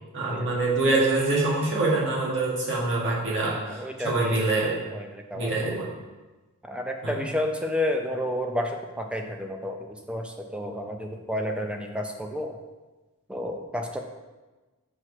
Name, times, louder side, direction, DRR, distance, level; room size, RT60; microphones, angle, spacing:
voice 1, 0.1-4.7 5.3-5.9 7.0-7.2, right 2 dB, 55° right, -4 dB, 1.8 m, -25 dB
voice 2, 3.4-4.5 4.9-5.8 6.6-12.6 13.3-14.0, left 1 dB, 5° right, 3 dB, 0.6 m, -31 dB
6.2 x 4.5 x 4.9 m, 1.2 s
head